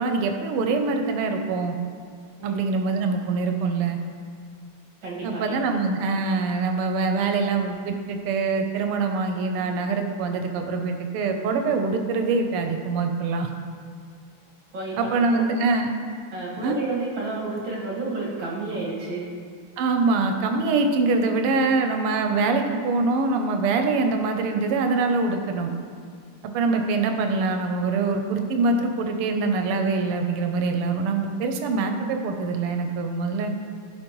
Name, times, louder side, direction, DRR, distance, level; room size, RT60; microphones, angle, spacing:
voice 1, 0.0-1.8 2.4-4.0 5.2-13.5 15.0-15.9 16.6-16.8 19.8-25.7 26.4-33.5, right 3 dB, 90° right, 5 dB, 1.6 m, -24 dB
voice 2, 5.0-5.6 14.7-15.5 16.3-19.3, right 3 dB, 60° right, -5 dB, 2.4 m, -31 dB
14.0 x 5.0 x 3.0 m, 2.2 s
omnidirectional pair, 2.4 m